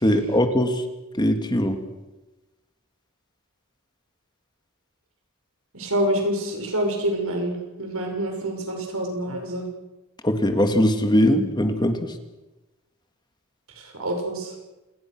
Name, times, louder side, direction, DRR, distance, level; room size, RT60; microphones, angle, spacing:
voice 1, 0.0-0.8 1.2-1.8 10.2-12.0, equal, 20° left, 6 dB, 2.0 m, -20 dB
voice 2, 5.7-9.7 13.8-14.5, right 1 dB, 90° right, 3 dB, 5.9 m, -27 dB
28.0 x 20.0 x 6.1 m, 1.1 s
head